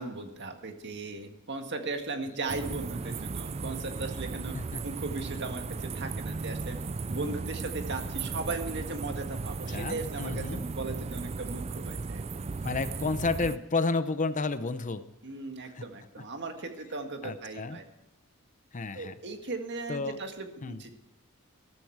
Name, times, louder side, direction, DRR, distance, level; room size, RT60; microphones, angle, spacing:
voice 1, 0.0-4.6 4.8-6.8 7.1-12.2 15.2-17.9 18.9-20.9, right 3 dB, 55° right, 5 dB, 1.8 m, -37 dB
sound 1, 2.5-13.6, right 4 dB, 30° right, 0.4 m, -36 dB
voice 2, 9.7-10.6 12.6-15.0 15.7-15.8 17.2-17.8 18.7-19.1 19.9-20.2 20.6-20.8, left 3 dB, 35° left, 12 dB, 0.7 m, -31 dB
13.5 x 13.0 x 4.7 m, 0.99 s
head